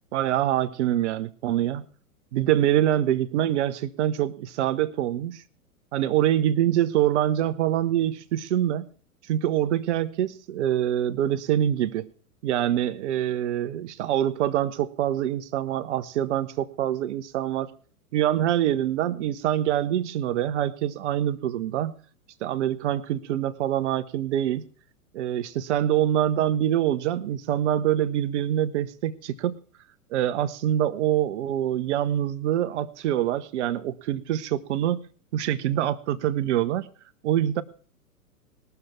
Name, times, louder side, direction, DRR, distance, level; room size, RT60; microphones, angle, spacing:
voice 1, 0.1-1.8 2.3-5.4 5.9-8.9 9.3-12.1 12.4-17.7 18.1-21.9 22.4-24.6 25.1-29.5 30.1-35.0 35.3-36.9 37.2-37.6, right 11 dB, 50° right, 13 dB, 1.0 m, -25 dB
20.5 x 6.9 x 4.5 m, 0.43 s
figure-of-eight pair, 110°, 45 cm